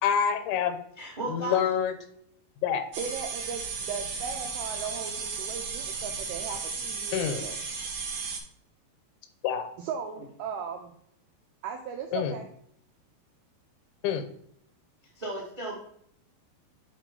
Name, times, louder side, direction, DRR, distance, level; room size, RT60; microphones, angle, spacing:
voice 1, 0.0-0.8 1.3-1.9 2.6-2.8 7.1-7.4 9.4-9.7 12.1-12.3 14.0-14.2, left 8 dB, 85° left, 9 dB, 3.1 m, -26 dB
voice 2, 1.0-1.6 10.1-10.2 15.1-15.7, right 2 dB, 55° right, -4 dB, 0.4 m, -35 dB
sound 1, 2.9-8.4, right 5 dB, 70° right, 2.0 m, -35 dB
voice 3, 3.0-7.6 9.8-10.9 11.6-12.5, right 6 dB, 85° right, 3 dB, 2.2 m, -37 dB
8.1 x 3.0 x 5.2 m, 0.68 s
omnidirectional pair, 5.1 m